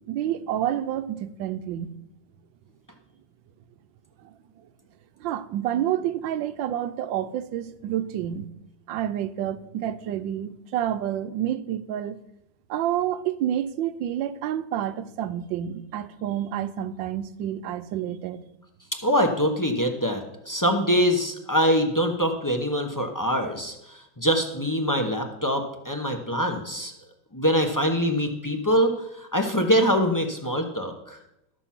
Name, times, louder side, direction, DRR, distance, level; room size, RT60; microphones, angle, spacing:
voice 1, 0.1-1.9 4.2-4.3 5.2-8.5 8.9-12.2 12.7-18.4, right 11 dB, 75° right, 1.3 m, -29 dB
voice 2, 19.0-26.9 27.3-31.2, equal, 25° left, 0.4 m, -24 dB
12.5 x 7.0 x 5.8 m
omnidirectional pair, 2.2 m